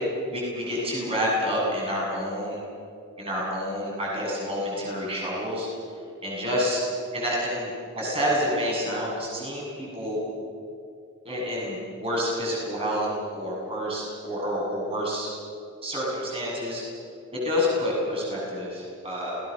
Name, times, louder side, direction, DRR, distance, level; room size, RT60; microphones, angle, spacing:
voice 1, 0.3-2.6 3.2-5.7 6.2-6.8 7.1-10.2 11.2-15.3 15.8-16.8 17.3-19.4, equal, 25° right, -4 dB, 7.6 m, -28 dB
29.0 x 19.0 x 6.7 m, 2.5 s
head